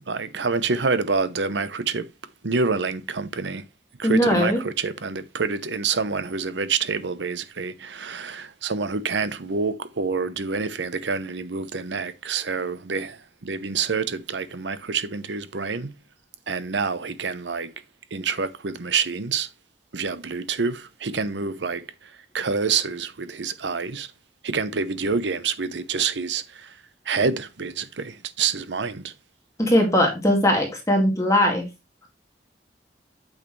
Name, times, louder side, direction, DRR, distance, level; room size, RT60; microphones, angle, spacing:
voice 1, 0.1-2.1 2.4-3.6 4.0-15.9 16.5-17.7 18.1-19.5 19.9-21.8 22.3-24.1 24.4-26.7 27.1-29.1, right 5 dB, 85° right, 0.8 m, -27 dB
voice 2, 4.0-4.6 29.6-31.6, left 1 dB, 15° left, 2.2 m, -20 dB
8.6 x 6.5 x 3.2 m
head